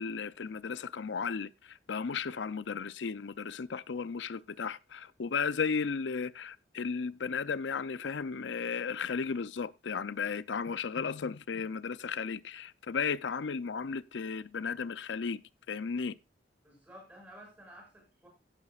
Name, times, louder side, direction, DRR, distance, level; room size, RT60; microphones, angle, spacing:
voice 1, 0.0-15.4 15.7-16.2, left 5 dB, 85° left, 0.6 m, -35 dB
voice 2, 16.6-18.3, equal, 10° right, 7.0 m, -52 dB
16.0 x 9.9 x 2.4 m
head